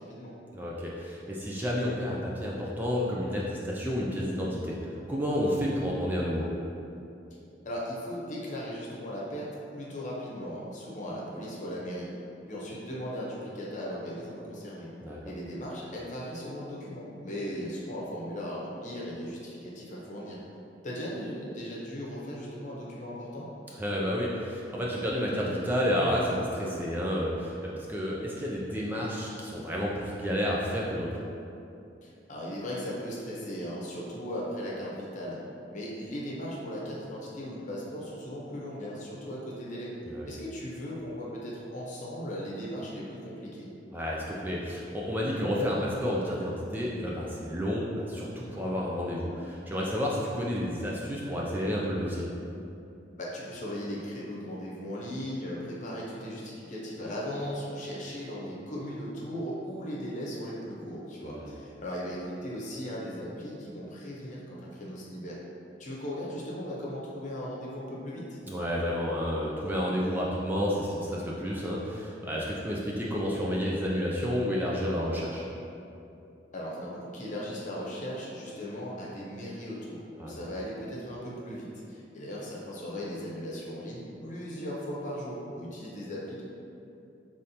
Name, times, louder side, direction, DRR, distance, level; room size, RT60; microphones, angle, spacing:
voice 1, 0.0-0.3 7.6-12.1 12.5-14.9 15.2-20.4 20.8-23.5 32.0-35.4 35.7-39.9 40.2-43.7 53.2-65.4 65.8-68.4 76.5-86.4, equal, 45° left, -5 dB, 0.8 m, -37 dB
voice 2, 0.5-6.5 15.0-15.2 23.8-31.1 40.1-40.3 43.9-52.3 61.2-61.5 68.5-75.4 80.2-80.3, equal, 10° right, -4 dB, 0.4 m, -30 dB
5.3 x 3.2 x 2.8 m, 2.7 s
head